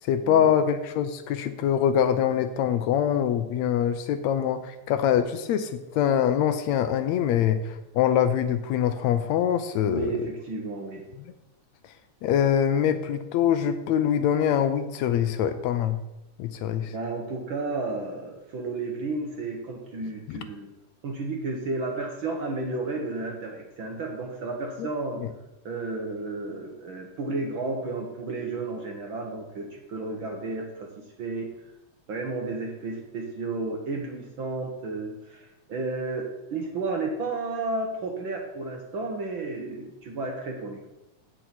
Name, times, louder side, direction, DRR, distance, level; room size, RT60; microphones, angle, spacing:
voice 1, 0.0-10.3 12.2-16.0 16.4-16.9 20.3-20.4 24.8-24.9 25.2-25.3, left 9 dB, 75° left, 10 dB, 1.8 m, -24 dB
voice 2, 9.8-11.0 16.9-20.7 21.0-25.2 25.6-31.5 32.1-40.9, right 3 dB, 55° right, 1 dB, 1.5 m, -32 dB
8.8 x 7.0 x 5.9 m, 0.96 s
omnidirectional pair, 3.3 m